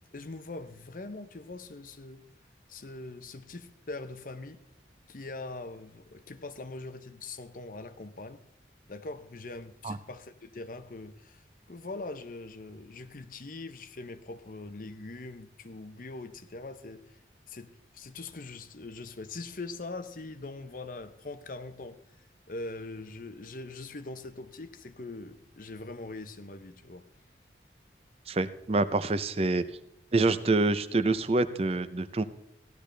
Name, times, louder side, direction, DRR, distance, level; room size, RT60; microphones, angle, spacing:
voice 1, 0.1-2.2 2.7-4.6 5.1-8.4 8.9-11.4 11.7-17.0 17.5-22.0 22.5-27.1, left 2 dB, 50° left, 0.7 m, -42 dB
voice 2, 28.3-29.6 30.1-32.2, right 2 dB, 35° right, 0.6 m, -26 dB
16.5 x 12.0 x 3.3 m
head